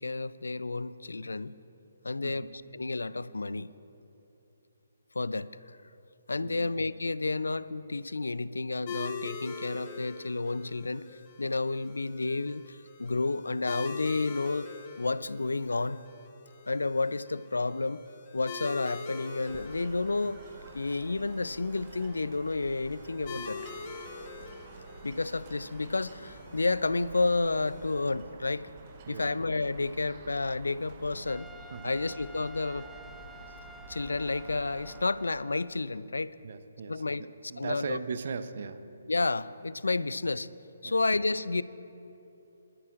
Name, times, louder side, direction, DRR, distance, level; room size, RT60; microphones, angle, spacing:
voice 1, 0.0-1.5 2.0-2.5 2.7-3.7 5.1-5.8 6.3-11.1 11.4-14.7 15.0-16.0 16.7-18.0 18.3-20.4 20.7-23.6 25.0-28.7 29.1-31.5 31.8-32.9 33.9-36.3 36.9-37.2 37.6-38.0 39.1-40.5 40.8-41.6, left 3 dB, 75° left, 17 dB, 0.4 m, -31 dB
sound 1, 8.9-28.0, left 4 dB, 30° left, 1.2 m, -45 dB
sound 2, 19.4-35.1, right 4 dB, 35° right, 1.0 m, -49 dB
voice 2, 29.1-29.4 31.7-32.0 36.4-38.9 40.8-41.0, right 5 dB, 50° right, 11 dB, 0.7 m, -38 dB
Trumpet, 31.3-35.9, equal, ahead, 0.4 m, -51 dB
24.5 x 13.0 x 2.5 m, 3.0 s
figure-of-eight pair, 140°, 0 cm